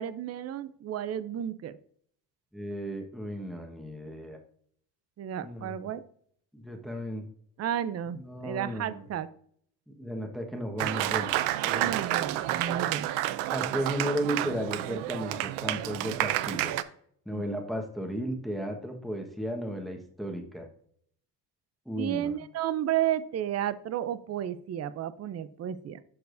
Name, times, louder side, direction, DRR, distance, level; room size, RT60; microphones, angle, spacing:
voice 1, 0.0-1.8 5.2-6.0 7.6-9.3 11.7-13.1 17.3-17.4 22.0-26.0, right 10 dB, 35° right, 14 dB, 0.5 m, -32 dB
voice 2, 2.5-4.4 5.4-5.8 6.5-7.3 8.2-9.0 10.0-11.3 11.6-12.0 13.5-16.7 17.3-20.7 21.9-22.3, equal, ahead, 3 dB, 1.3 m, -34 dB
Applause, 10.8-16.8, right 14 dB, 85° right, 0.6 m, -30 dB
11.5 x 4.6 x 2.6 m, 0.62 s
hypercardioid pair, 60°, 46 cm